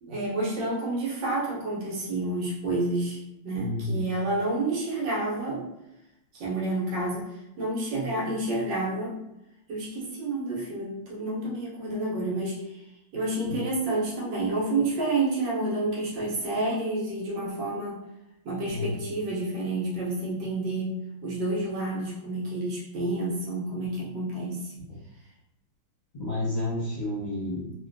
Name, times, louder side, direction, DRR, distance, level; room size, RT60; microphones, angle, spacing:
voice 1, 0.0-5.7 6.3-9.2 9.7-18.0 18.4-24.7, right 2 dB, 70° right, -5 dB, 1.5 m, -29 dB
voice 2, 3.5-4.0 13.4-13.6 18.7-19.0 26.2-27.9, left 1 dB, 30° left, -11 dB, 0.9 m, -31 dB
3.2 x 2.5 x 2.5 m, 0.87 s
omnidirectional pair, 2.1 m